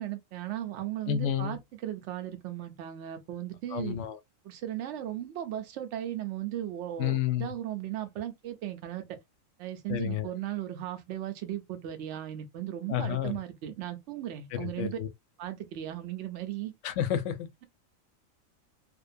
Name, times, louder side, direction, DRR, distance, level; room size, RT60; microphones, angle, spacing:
voice 1, 0.0-4.0 4.4-9.2 9.6-15.0 15.4-16.7, right 12 dB, 65° right, 0.9 m, -36 dB
voice 2, 1.1-1.6 3.7-4.2 7.0-7.5 9.9-10.3 12.9-13.4 14.6-15.1 16.8-17.5, left 10 dB, 70° left, 0.9 m, -30 dB
2.6 x 2.2 x 2.4 m
omnidirectional pair, 1.4 m